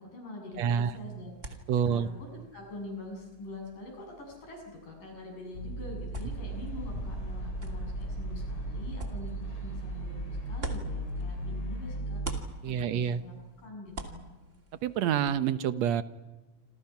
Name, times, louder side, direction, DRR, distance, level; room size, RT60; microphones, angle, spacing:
voice 1, 0.0-14.3, left 2 dB, 85° left, 2 dB, 9.1 m, -44 dB
sound 1, 0.5-11.7 12.0-15.4, right 2 dB, 25° right, 2.5 m, -46 dB
voice 2, 0.6-0.9 1.7-2.1 12.6-13.2 14.8-16.0, right 8 dB, 65° right, 12 dB, 2.0 m, -27 dB
sound 2, 5.5-12.4, right 1 dB, 45° left, 3.8 m, -36 dB
sound 3, 6.2-12.0, equal, 60° left, 7.1 m, -55 dB
28.0 x 27.5 x 5.9 m, 1.2 s
omnidirectional pair, 3.7 m